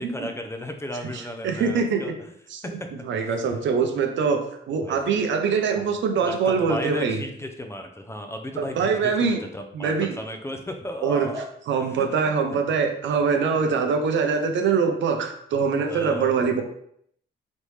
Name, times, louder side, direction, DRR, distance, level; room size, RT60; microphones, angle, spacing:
voice 1, 0.0-2.3 2.6-3.3 4.8-5.0 5.8-11.5 12.0-12.3 15.9-16.3, equal, 15° left, 4 dB, 0.6 m, -35 dB
voice 2, 1.1-2.2 2.5-7.2 8.6-9.4 9.7-10.1 11.0-11.3 11.7-16.6, right 5 dB, 70° right, 5 dB, 0.7 m, -23 dB
4.1 x 3.4 x 3.2 m, 0.70 s
cardioid pair, 90°, 20 cm